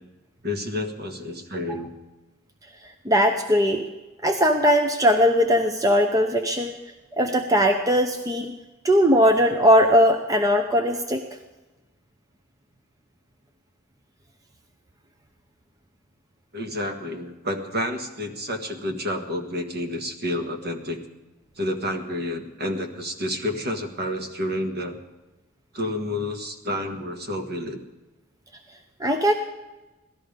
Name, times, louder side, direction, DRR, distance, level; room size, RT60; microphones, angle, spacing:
voice 1, 0.4-1.9 16.5-21.0 21.6-25.0 25.7-27.8, left 1 dB, 50° right, 4 dB, 1.6 m, -29 dB
voice 2, 3.1-3.8 4.2-6.7 7.2-8.5 8.8-11.2 29.0-29.3, equal, 15° right, 5 dB, 0.8 m, -19 dB
17.5 x 13.5 x 5.2 m, 1.1 s
head